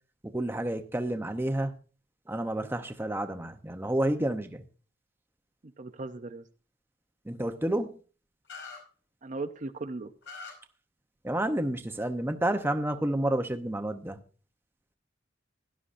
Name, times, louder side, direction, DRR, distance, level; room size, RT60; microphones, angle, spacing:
voice 1, 0.3-1.7 2.3-4.6 7.2-8.0 11.2-14.2, right 1 dB, 10° right, 0.8 m, -30 dB
voice 2, 5.6-6.4 9.2-10.1, right 3 dB, 40° right, 0.6 m, -37 dB
sound 1, 8.5-8.8 10.2-10.5, left 4 dB, 75° left, 5.4 m, -42 dB
16.5 x 11.5 x 2.6 m
head